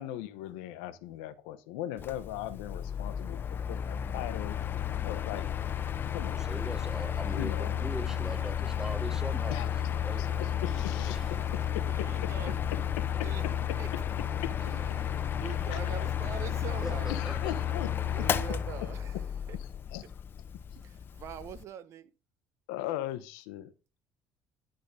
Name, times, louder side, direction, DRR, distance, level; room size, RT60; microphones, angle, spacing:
voice 1, 0.0-4.6 5.0-5.5 6.1-6.5 7.3-7.8 9.5-9.7 10.2-11.2 11.5-12.3 13.0-14.0 14.4-14.5 14.9-15.0 15.4-16.1 17.1-18.6 19.5-20.0 22.7-23.7, left 13 dB, 85° left, 0.8 m, -39 dB
Mechanical fan, 2.0-21.6, left 9 dB, 40° left, 0.7 m, -32 dB
voice 2, 6.1-9.6 10.0-10.3 11.1-11.2 16.7-17.6, right 1 dB, 10° right, 0.7 m, -41 dB
voice 3, 11.0-11.6 11.9-12.6 13.2-13.4 13.8-13.9 14.6-17.2 18.1-19.1 19.5-19.6 20.7-22.1, right 9 dB, 55° right, 0.8 m, -44 dB
10.5 x 3.8 x 5.2 m
supercardioid pair, 85°, 6 cm